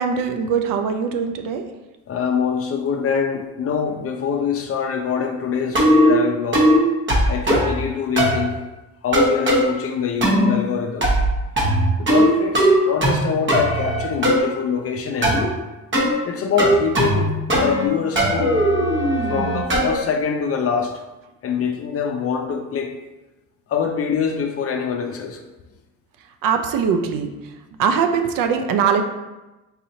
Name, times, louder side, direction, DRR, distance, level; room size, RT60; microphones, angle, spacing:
voice 1, 0.0-1.7 26.4-27.3 27.8-29.0, right 6 dB, 60° right, 6 dB, 0.5 m, -21 dB
voice 2, 2.1-6.7 7.3-8.6 9.0-11.1 12.0-15.5 16.2-17.3 17.6-18.6 19.3-21.0 21.4-23.0 23.7-25.4, left 6 dB, 40° left, 5 dB, 0.5 m, -24 dB
sound 1, 5.7-6.1 6.5-6.8 7.1-7.7 8.2-8.4 9.1-9.6 10.2-10.5 11.0-11.3 11.6-12.3 12.5-13.2 13.5-14.4 15.2-15.5 15.9-16.1 16.6-17.2 17.5-17.9 18.2-20.0, equal, 30° right, 1.1 m, -17 dB
4.0 x 2.7 x 2.7 m, 1.1 s
supercardioid pair, 75°, 38 cm